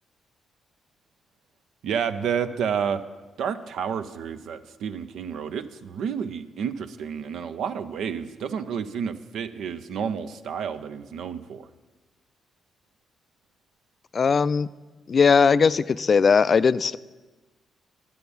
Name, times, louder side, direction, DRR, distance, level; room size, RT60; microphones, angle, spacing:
voice 1, 1.8-3.0 3.4-11.7, right 7 dB, 70° right, 10 dB, 0.5 m, -30 dB
voice 2, 14.1-14.7 15.1-17.0, left 5 dB, 50° left, 16 dB, 0.3 m, -19 dB
10.5 x 6.9 x 7.0 m, 1.2 s
hypercardioid pair, 45°, 0 cm